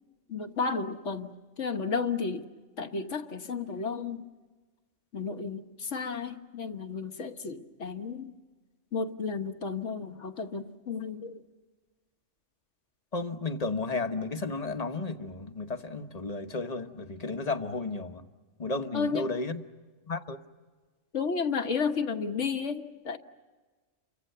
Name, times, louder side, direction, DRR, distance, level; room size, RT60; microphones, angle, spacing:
voice 1, 0.3-2.5 2.8-4.3 5.1-8.3 8.9-11.4 18.9-19.2 21.1-23.2, left 5 dB, 70° left, 6 dB, 1.6 m, -32 dB
voice 2, 13.1-18.2 18.6-19.6 20.1-20.4, left 3 dB, 35° left, 7 dB, 1.2 m, -33 dB
29.5 x 24.0 x 6.8 m, 1.3 s
omnidirectional pair, 1.3 m